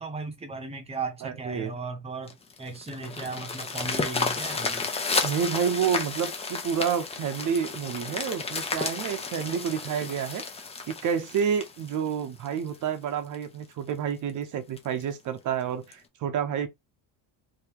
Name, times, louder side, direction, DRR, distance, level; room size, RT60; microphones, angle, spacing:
voice 1, 0.0-4.9, right 4 dB, 15° right, 0.8 m, -36 dB
voice 2, 1.2-1.7 5.2-10.4 10.9-16.7, right 7 dB, 45° right, 0.8 m, -29 dB
sound 1, 2.3-12.8 13.3-13.4 13.9-14.0 14.3-14.4 14.8-15.0 15.9-16.0, left 4 dB, 15° left, 0.6 m, -32 dB
3.7 x 2.9 x 2.9 m
cardioid pair, 170°, 43 cm